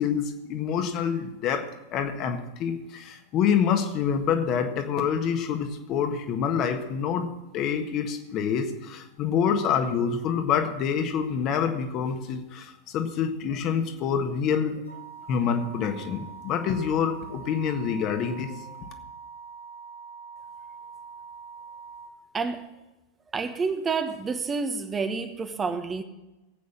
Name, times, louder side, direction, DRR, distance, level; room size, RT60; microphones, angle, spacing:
voice 1, 0.0-7.3 7.5-14.8 15.3-18.8, left 7 dB, 35° left, 6 dB, 1.5 m, -27 dB
sound 1, 14.8-22.1, right 5 dB, 90° left, 5.5 m, -44 dB
voice 2, 22.3-22.7 23.3-26.0, right 4 dB, 20° right, 8 dB, 1.1 m, -29 dB
18.0 x 8.3 x 7.2 m, 1.0 s
figure-of-eight pair, 90°, 0 cm